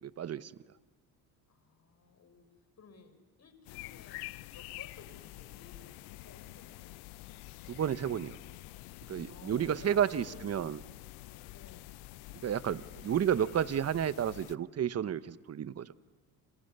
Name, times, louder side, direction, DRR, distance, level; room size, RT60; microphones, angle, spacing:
voice 1, 0.0-0.5 7.7-8.4 9.1-10.8 12.4-15.9, right 9 dB, 40° right, 15 dB, 1.1 m, -31 dB
voice 2, 1.5-2.5 2.8-4.2 4.5-7.0 9.3-10.5 11.5-11.9, left 5 dB, 40° left, 7 dB, 5.7 m, -56 dB
sound 1, 3.7-14.6, left 18 dB, 80° left, 0.8 m, -48 dB
29.0 x 28.0 x 6.9 m, 1.3 s
supercardioid pair, 80°, 39 cm